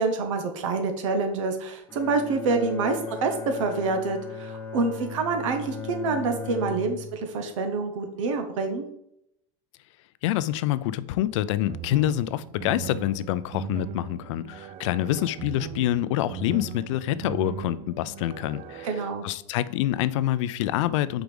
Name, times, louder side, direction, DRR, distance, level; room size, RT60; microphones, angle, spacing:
voice 1, 0.0-8.8 18.8-19.2, right 4 dB, 85° right, 6 dB, 1.0 m, -27 dB
Bowed string instrument, 1.9-7.4, left 5 dB, 15° left, 0.8 m, -37 dB
voice 2, 10.2-21.2, left 13 dB, 75° left, 16 dB, 0.4 m, -26 dB
sound 1, 11.7-19.1, right 9 dB, 35° right, 0.4 m, -38 dB
5.0 x 4.7 x 5.2 m, 0.77 s
supercardioid pair, 140°, 16 cm